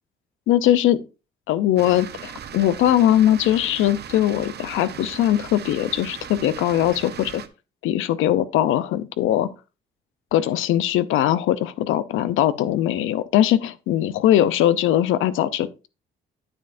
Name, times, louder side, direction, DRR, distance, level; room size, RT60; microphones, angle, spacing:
voice 1, 0.5-1.0 1.5-7.4 7.8-9.5 10.3-15.9, left 12 dB, 85° left, 0.6 m, -20 dB
sound 1, 1.8-7.5, right 8 dB, 55° right, 0.8 m, -38 dB
8.9 x 7.6 x 2.6 m
cardioid pair, 90°, 20 cm